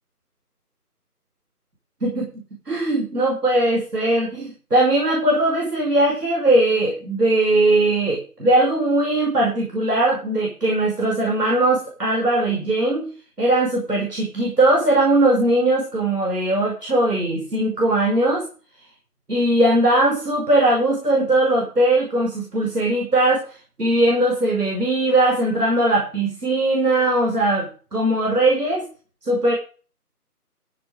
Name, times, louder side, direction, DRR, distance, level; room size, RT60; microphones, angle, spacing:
voice 1, 2.0-2.3 2.7-13.1 13.4-18.4 19.3-23.5 23.8-28.8 29.2-29.5, right 1 dB, 75° right, -1 dB, 5.6 m, -19 dB
15.0 x 7.5 x 5.1 m, 0.37 s
figure-of-eight pair, 180°, 47 cm